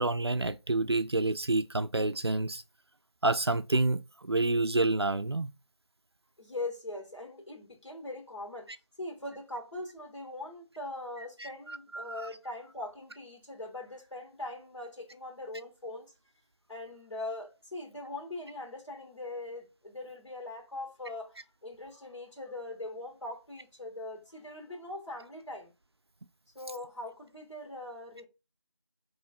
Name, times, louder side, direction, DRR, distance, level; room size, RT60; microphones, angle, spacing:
voice 1, 0.0-2.6 3.2-5.5 11.4-12.2, right 2 dB, 60° right, 0.4 m, -29 dB
voice 2, 6.4-8.7 9.0-16.1 16.7-25.7 26.5-28.3, left 2 dB, 80° left, 1.6 m, -41 dB
4.2 x 3.0 x 2.3 m
figure-of-eight pair, 175°, 15 cm